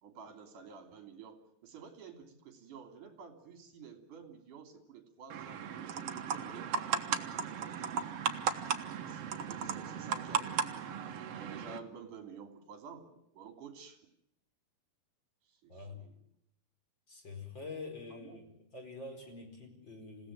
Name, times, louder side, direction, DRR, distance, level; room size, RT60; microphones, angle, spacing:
voice 1, 0.0-7.1 7.5-8.0 8.6-10.9 11.3-14.1 15.5-16.2 18.1-18.4, right 6 dB, 50° right, 6 dB, 4.3 m, -51 dB
sound 1, 5.3-11.8, right 7 dB, 70° right, 1.4 m, -36 dB
voice 2, 15.7-16.0 17.1-18.5 18.7-20.3, left 3 dB, 25° left, 4 dB, 5.1 m, -46 dB
28.0 x 17.0 x 7.6 m, 0.75 s
omnidirectional pair, 4.8 m